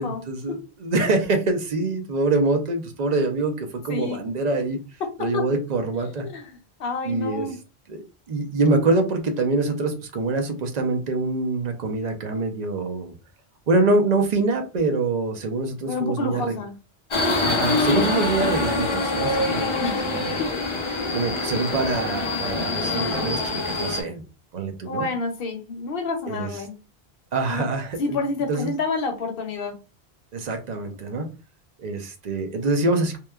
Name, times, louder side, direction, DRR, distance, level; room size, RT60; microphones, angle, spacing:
voice 1, 0.0-4.8 5.2-6.3 7.0-7.5 7.9-13.1 13.7-16.6 17.4-20.3 21.1-24.2 24.5-25.1 26.3-26.5 27.3-28.2 28.5-28.7 30.3-31.3 31.8-33.2, right 3 dB, 50° right, 5 dB, 0.6 m, -25 dB
voice 2, 3.9-4.3 5.3-5.4 6.2-6.5 6.8-7.6 15.9-16.7 19.8-20.0 20.4-20.5 24.8-26.7 27.5-27.6 28.0-29.8, left 3 dB, 65° left, 5 dB, 0.8 m, -28 dB
Subway metro underground, 17.1-24.0, left 2 dB, 40° left, 0.4 m, -25 dB
2.9 x 2.1 x 2.2 m, 0.31 s
omnidirectional pair, 1.1 m